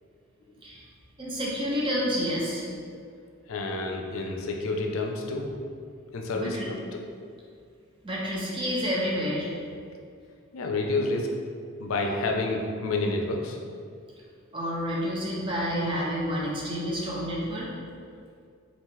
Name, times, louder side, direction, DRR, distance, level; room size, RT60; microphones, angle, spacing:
voice 1, 1.2-2.7 6.3-6.7 8.0-9.5 14.5-17.7, equal, 25° right, -4 dB, 0.5 m, -29 dB
voice 2, 3.5-5.5 6.1-6.8 10.5-11.3 11.8-13.6, left 2 dB, 80° left, 1 dB, 0.4 m, -29 dB
3.0 x 2.4 x 3.6 m, 2.2 s
head